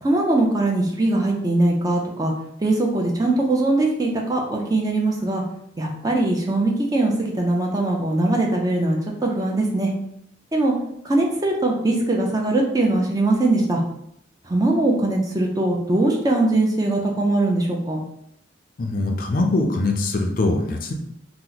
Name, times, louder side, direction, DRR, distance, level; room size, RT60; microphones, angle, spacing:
voice 1, 0.0-2.3 2.6-5.4 5.8-9.9 10.5-10.7 11.0-13.8 14.5-18.0, right 2 dB, 20° right, -1 dB, 0.4 m, -21 dB
voice 2, 18.8-20.9, left 2 dB, 45° left, 3 dB, 0.4 m, -22 dB
2.9 x 2.1 x 3.8 m, 0.73 s
head